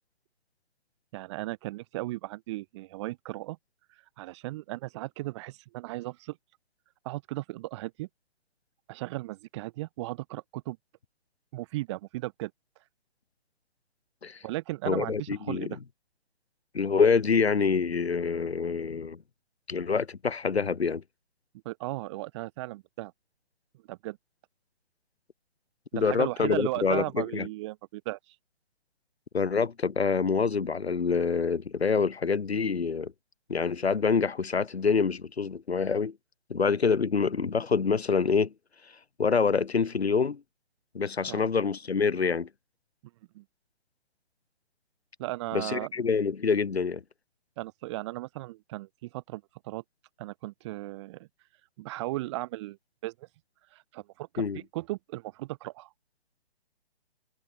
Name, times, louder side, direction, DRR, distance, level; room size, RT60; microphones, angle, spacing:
voice 1, 1.1-3.6 4.2-6.4 7.0-8.1 8.9-10.8 11.5-12.5 14.4-15.8 21.6-23.1 23.9-24.2 25.9-28.3 41.2-41.4 43.3-43.4 45.2-45.9 47.6-49.8 50.2-51.3 51.8-52.8 53.0-53.3 53.7-54.4 54.7-55.9, right 18 dB, 30° right, 5.9 m, -36 dB
voice 2, 14.9-15.7 16.7-19.2 19.7-21.0 25.9-27.5 29.3-33.1 33.5-36.1 36.5-38.5 39.2-40.4 40.9-42.5 45.5-47.0 54.4-54.6, left 5 dB, 85° left, 7.0 m, -26 dB
hypercardioid pair, 160°, 31 cm